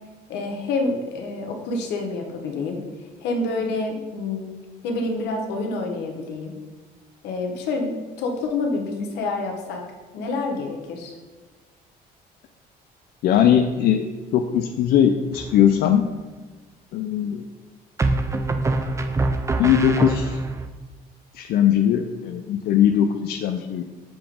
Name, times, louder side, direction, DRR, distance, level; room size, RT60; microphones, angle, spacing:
voice 1, 0.3-2.8 3.2-4.5 4.8-6.5 7.2-7.9 8.2-9.8 10.1-11.2, left 3 dB, 85° left, 2 dB, 1.0 m, -27 dB
voice 2, 13.2-14.1 14.3-16.1 16.9-17.5 19.6-20.4 21.3-23.8, left 9 dB, 65° left, 6 dB, 0.4 m, -20 dB
sound 1, 15.3-15.9 18.0-20.7, right 2 dB, 15° right, 0.4 m, -24 dB
7.0 x 2.9 x 5.1 m, 1.3 s
cardioid pair, 110°, 17 cm